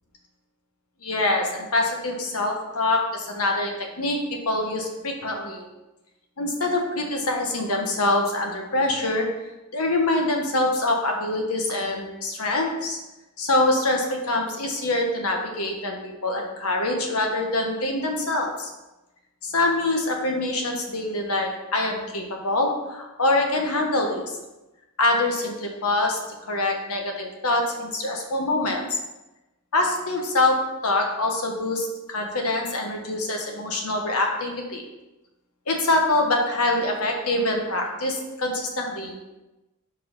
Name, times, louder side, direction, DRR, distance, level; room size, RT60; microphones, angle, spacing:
voice 1, 1.0-5.7 6.4-9.3 9.7-13.0 13.4-18.7 19.4-24.3 25.0-28.8 29.7-34.8 35.7-39.1, left 2 dB, 85° left, 2 dB, 1.2 m, -25 dB
4.8 x 4.8 x 5.4 m, 1.0 s
head